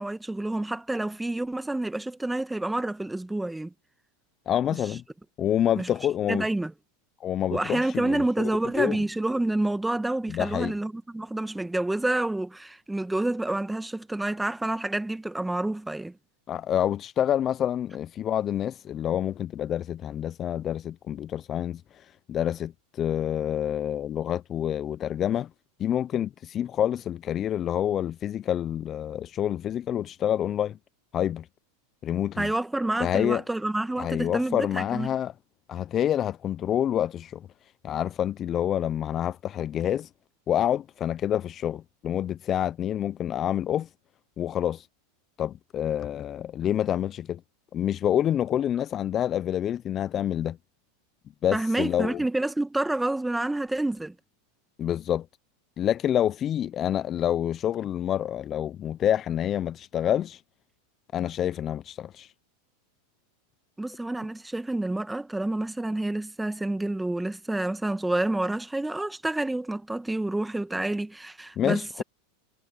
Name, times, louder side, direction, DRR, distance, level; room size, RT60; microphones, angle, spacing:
voice 1, 0.0-3.7 5.8-5.9 6.3-6.7 7.5-16.2 32.4-35.1 51.5-54.1 63.8-72.0, right 2 dB, 5° right, 1.5 m, -28 dB
voice 2, 4.5-5.0 5.4-6.4 7.2-8.5 8.8-9.0 10.3-10.7 16.5-21.8 22.3-25.5 25.8-30.8 31.1-31.5 32.0-32.5 33.0-33.4 34.0-35.3 35.7-37.5 37.8-40.1 40.5-43.9 44.4-44.9 45.4-47.4 47.7-50.6 51.4-52.2 54.8-55.3 55.8-60.4 61.1-62.3 71.6-72.0, left 10 dB, 35° left, 0.5 m, -27 dB
hypercardioid pair, 110°, 0 cm